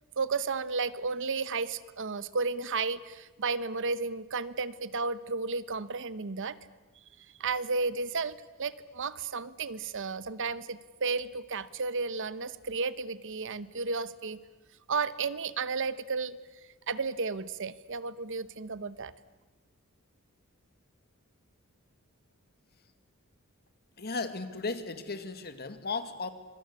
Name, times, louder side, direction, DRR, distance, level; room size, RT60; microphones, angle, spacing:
voice 1, 0.2-6.6 7.4-14.4 14.9-16.4 16.9-19.1, right 4 dB, 60° right, 16 dB, 1.0 m, -33 dB
voice 2, 24.0-26.3, left 4 dB, 50° left, 9 dB, 2.1 m, -35 dB
25.5 x 23.5 x 8.3 m, 1.2 s
head